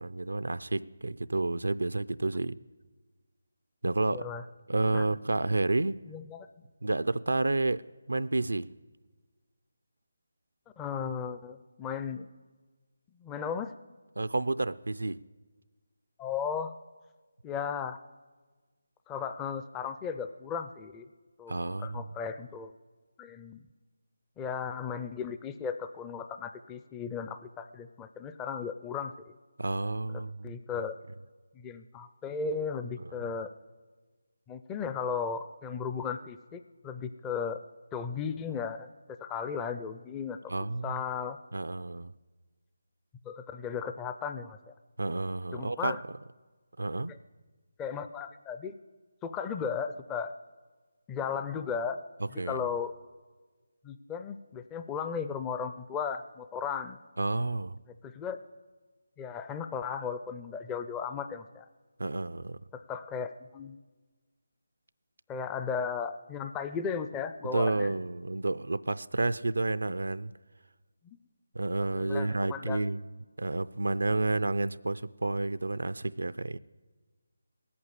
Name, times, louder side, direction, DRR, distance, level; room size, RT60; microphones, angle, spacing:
voice 1, 0.0-2.6 3.8-4.3 4.7-6.0 6.8-7.8 8.1-8.7 14.2-15.2 21.5-22.1 29.6-30.5 40.5-41.0 41.5-42.1 45.0-46.0 46.8-47.1 52.4-52.6 57.2-57.8 62.0-62.6 67.5-70.3 71.5-73.0 73.4-76.6, right 2 dB, 85° right, 13 dB, 0.4 m, -30 dB
voice 2, 4.1-4.4 4.9-5.1 6.1-6.5 10.8-12.3 13.2-13.7 16.2-16.7 17.4-18.0 19.1-21.1 21.4-21.5 21.8-22.7 23.2-23.6 24.4-29.3 30.1-31.0 31.5-33.5 34.5-37.6 37.9-38.9 39.2-40.5 40.8-41.4 43.2-44.7 45.5-46.0 47.1-47.2 47.8-48.7 49.2-50.3 51.1-52.0 52.3-52.9 53.8-57.0 58.0-58.4 59.2-61.7 62.7-63.8 65.3-68.0 71.0-71.2 71.8-72.8, left 6 dB, 10° left, 9 dB, 0.4 m, -36 dB
18.5 x 8.6 x 8.2 m, 1.3 s
figure-of-eight pair, 165°, 0 cm